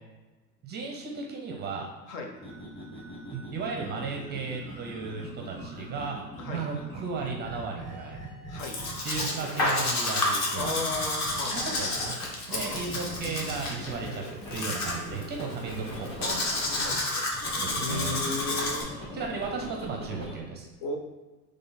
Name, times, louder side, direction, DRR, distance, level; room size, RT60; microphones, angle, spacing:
voice 1, 0.6-1.9 3.3-6.2 6.4-8.2 9.0-10.8 11.5-12.1 12.5-14.2 14.5-16.3 17.6-18.2 19.1-20.7, right 4 dB, 20° right, 1 dB, 0.5 m, -35 dB
sound 1, 2.4-9.6 10.6-12.3 12.5-17.0 17.3-20.4, right 1 dB, 10° left, 1.2 m, -42 dB
voice 2, 8.5-8.8 10.5-11.7 12.5-12.9 16.2-16.4 16.7-18.9 20.8-21.0, left 3 dB, 65° left, 3 dB, 1.0 m, -36 dB
Domestic sounds home sounds, 8.6-18.8, left 2 dB, 35° left, 1.1 m, -31 dB
3.8 x 3.3 x 4.0 m, 1.2 s
hypercardioid pair, 110°, 50 cm